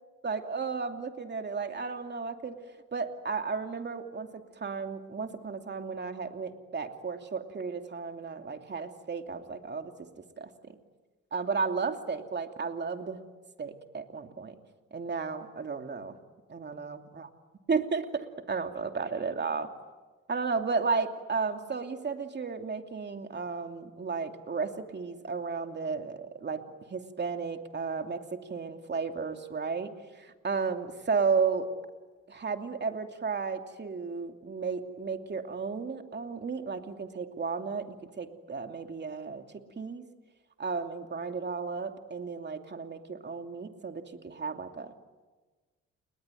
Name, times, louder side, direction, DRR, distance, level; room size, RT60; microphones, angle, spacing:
voice 1, 0.2-2.6 2.9-4.3 4.6-10.1 10.4-10.7 11.3-13.2 13.6-14.5 14.9-16.2 16.5-17.3 17.7-19.7 20.3-26.6 26.9-29.9 30.2-31.7 32.3-39.4 39.8-40.0 40.6-44.9, right 5 dB, 35° right, 5 dB, 2.8 m, -33 dB
30.0 x 21.0 x 9.3 m, 1.3 s
cardioid pair, 90°, 30 cm